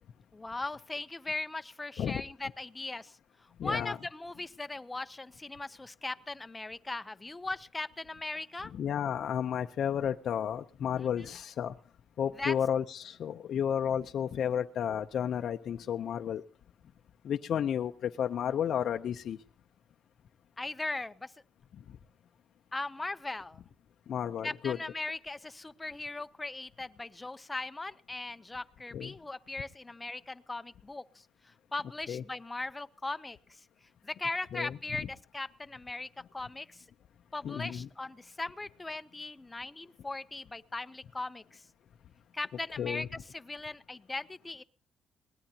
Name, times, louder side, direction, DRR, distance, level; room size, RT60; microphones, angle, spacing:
voice 1, 0.3-8.7 11.0-11.1 12.4-12.5 20.6-21.3 22.7-23.6 24.4-33.6 34.0-36.8 37.3-41.6 42.3-44.6, left 2 dB, 15° left, 12 dB, 0.7 m, -39 dB
voice 2, 3.6-4.0 8.7-11.7 12.2-16.4 17.3-19.4 24.1-24.8 28.9-29.1 32.1-32.2 34.5-34.8 37.4-37.9 42.8-43.1, left 8 dB, 60° left, 5 dB, 0.6 m, -32 dB
22.0 x 19.0 x 2.9 m, 0.43 s
cardioid pair, 130°, 0 cm